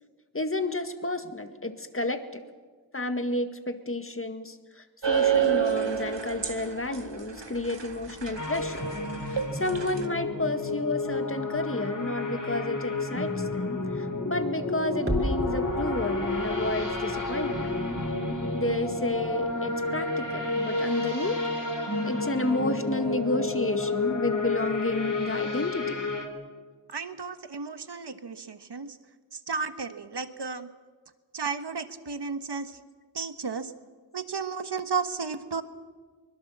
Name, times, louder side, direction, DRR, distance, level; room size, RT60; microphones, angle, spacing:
voice 1, 0.3-2.4 2.9-8.9 9.3-17.7 18.5-21.4 22.0-26.0, left 2 dB, 30° left, 8 dB, 1.9 m, -31 dB
sound 1, 5.0-10.1, right 9 dB, 85° right, 2.0 m, -29 dB
sound 2, 8.4-26.3, left 2 dB, 45° left, 3.7 m, -30 dB
sound 3, 15.1-20.0 20.3-20.4, equal, 30° right, 3.8 m, -36 dB
voice 2, 26.9-29.0 29.3-30.7 31.3-32.8 33.1-33.7 34.1-35.6, right 5 dB, 70° right, 10 dB, 1.4 m, -33 dB
23.5 x 21.0 x 7.4 m, 1.5 s
wide cardioid pair, 55°, 42 cm